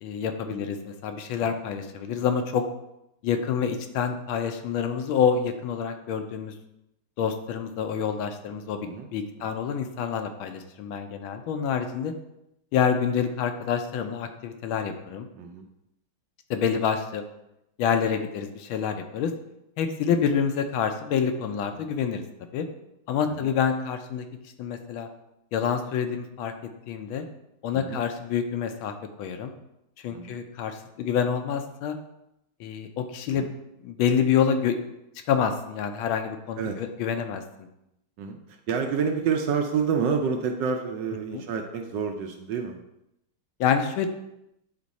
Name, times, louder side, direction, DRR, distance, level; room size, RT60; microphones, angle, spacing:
voice 1, 0.0-2.6 3.2-6.5 7.2-12.1 12.7-15.3 16.5-17.2 17.8-19.3 19.8-22.2 22.5-22.7 23.1-24.2 24.6-25.1 25.5-26.5 26.9-27.3 27.6-29.5 30.0-31.9 32.6-33.5 33.8-34.7 35.3-37.4 41.3-41.4 43.6-44.1, left 7 dB, 80° left, 7 dB, 1.4 m, -27 dB
voice 2, 15.4-15.7 27.7-28.0 30.1-30.4 33.3-33.5 36.6-36.8 38.2-42.8, right 6 dB, 70° right, 4 dB, 1.1 m, -28 dB
8.3 x 3.6 x 4.0 m, 0.85 s
omnidirectional pair, 2.3 m